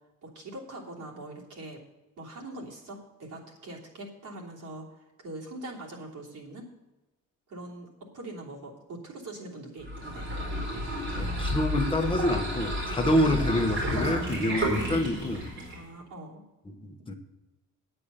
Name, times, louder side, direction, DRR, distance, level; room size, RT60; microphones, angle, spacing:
voice 1, 0.2-1.8 2.2-6.7 7.5-10.3 15.7-16.4 17.0-17.2, right 2 dB, 75° right, -3 dB, 3.1 m, -43 dB
sound 1, 9.8-15.8, equal, 40° right, 4.4 m, -31 dB
voice 2, 11.2-15.5 16.8-17.1, left 1 dB, 15° left, 4 dB, 1.0 m, -27 dB
9.2 x 8.7 x 6.7 m, 1.1 s
wide cardioid pair, 180°, 31 cm